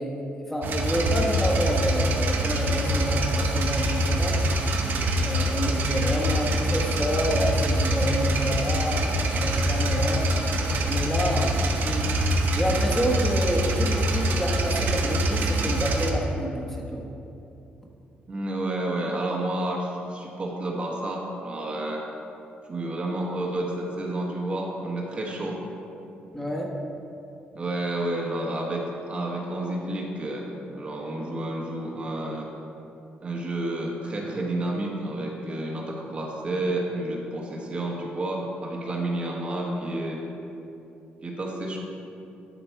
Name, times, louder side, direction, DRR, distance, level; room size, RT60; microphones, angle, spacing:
voice 1, 0.0-4.4 5.2-12.1 12.5-17.0 26.3-26.8, equal, 10° left, -2 dB, 1.3 m, -28 dB
sound 1, 0.6-16.1, right 1 dB, 60° right, 1.0 m, -24 dB
voice 2, 18.3-22.0 22.7-25.6 27.5-32.5 33.2-40.2 41.2-41.8, right 1 dB, 35° right, -1 dB, 1.2 m, -30 dB
12.5 x 5.1 x 4.7 m, 2.8 s
cardioid pair, 125°, 4 cm